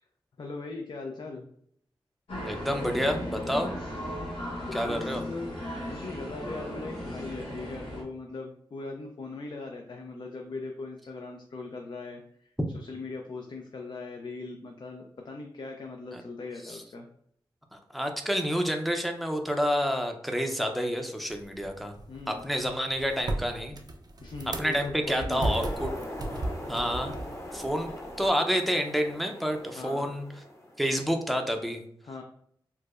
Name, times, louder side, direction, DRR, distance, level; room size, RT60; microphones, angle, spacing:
voice 1, 0.4-1.4 4.7-5.5 5.9-17.1 22.1-22.5 24.2-24.8 25.1-25.6 29.8-30.1 32.0-32.2, left 3 dB, 55° left, 2 dB, 0.5 m, -40 dB
sound 1, 2.3-8.0, equal, 90° left, 1.0 m, -36 dB
voice 2, 2.4-3.7 4.7-5.2 16.1-16.2 16.6-16.8 17.7-21.9 22.3-23.8 24.5-25.9 26.7-27.1 27.5-27.9 28.2-30.3 30.8-31.8, equal, ahead, 4 dB, 0.6 m, -29 dB
sound 2, 21.3-28.3, right 2 dB, 45° right, 0.5 m, -36 dB
sound 3, 25.3-30.9, left 1 dB, 30° left, 0.9 m, -41 dB
4.6 x 2.1 x 2.4 m, 0.67 s
cardioid pair, 55°, 9 cm